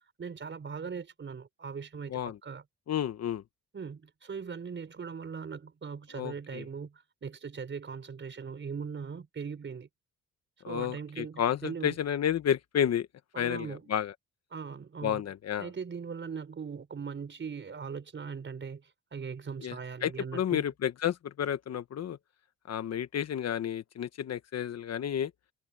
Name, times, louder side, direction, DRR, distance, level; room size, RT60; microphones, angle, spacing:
voice 1, 0.2-2.1 2.4-2.6 3.7-9.9 10.6-12.0 13.3-13.9 14.5-15.2 15.6-20.7, right 6 dB, 40° right, 4.6 m, -40 dB
voice 2, 2.9-3.4 6.1-6.6 10.6-13.1 13.4-14.1 15.0-15.7 19.6-19.8 20.0-22.2 22.7-25.3, left 9 dB, 55° left, 1.3 m, -31 dB
cardioid pair, 90°, 30 cm